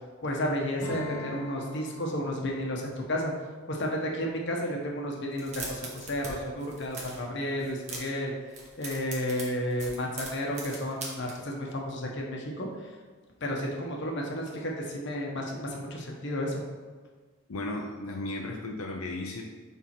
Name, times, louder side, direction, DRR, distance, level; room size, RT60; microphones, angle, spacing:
voice 1, 0.2-3.3 3.7-8.3 8.8-12.7 13.4-16.6, equal, 55° left, 0 dB, 1.1 m, -32 dB
Strum, 0.8-5.5, left 2 dB, 15° left, 1.0 m, -45 dB
sound 1, 5.3-6.3 6.6-7.2 7.6-8.2 8.5-11.3, right 3 dB, 35° right, 1.2 m, -40 dB
voice 2, 17.5-19.4, left 2 dB, 90° left, 1 dB, 0.7 m, -35 dB
7.3 x 3.6 x 4.4 m, 1.5 s
head